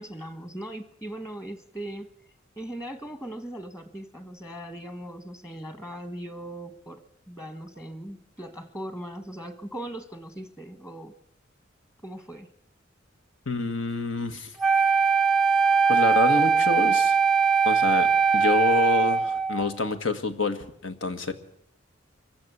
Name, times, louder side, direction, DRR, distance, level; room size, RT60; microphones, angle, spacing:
voice 1, 0.0-2.1 2.6-11.1 12.0-12.5, right 1 dB, 15° left, 9 dB, 1.3 m, -39 dB
voice 2, 13.5-14.5 15.9-17.2 17.7-21.3, left 3 dB, 85° left, 8 dB, 1.9 m, -27 dB
Wind instrument woodwind instrument, 14.6-19.7, right 5 dB, ahead, 0.8 m, -21 dB
24.0 x 15.5 x 8.4 m, 0.73 s
head